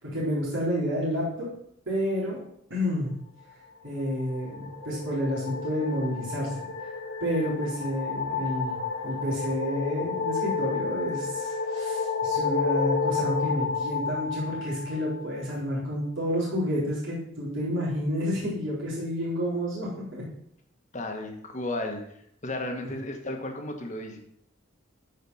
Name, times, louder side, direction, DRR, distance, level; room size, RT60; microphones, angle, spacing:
voice 1, 0.0-1.5 1.9-2.4 2.7-3.1 3.8-6.9 7.2-8.8 9.0-20.2, equal, 70° right, -7 dB, 4.2 m, -30 dB
sound 1, 4.0-15.4, left 5 dB, 70° left, 1.2 m, -31 dB
voice 2, 20.9-22.0 22.4-24.2, left 1 dB, 35° left, 3 dB, 1.5 m, -33 dB
13.0 x 5.1 x 5.6 m, 0.72 s
head